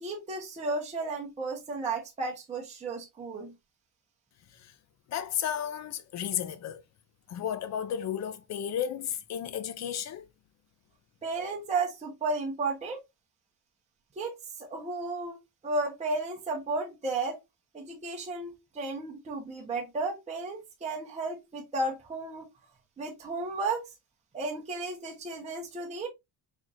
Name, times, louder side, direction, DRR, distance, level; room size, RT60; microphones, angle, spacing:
voice 1, 0.0-3.5 11.2-13.0 14.2-15.4 15.6-17.4 17.7-22.5 23.0-23.8 24.3-26.1, right 3 dB, 15° right, 1.0 m, -33 dB
voice 2, 5.1-6.8 7.3-10.3, left 9 dB, 40° left, 0.6 m, -33 dB
4.5 x 4.4 x 2.4 m
cardioid pair, 160°, 42 cm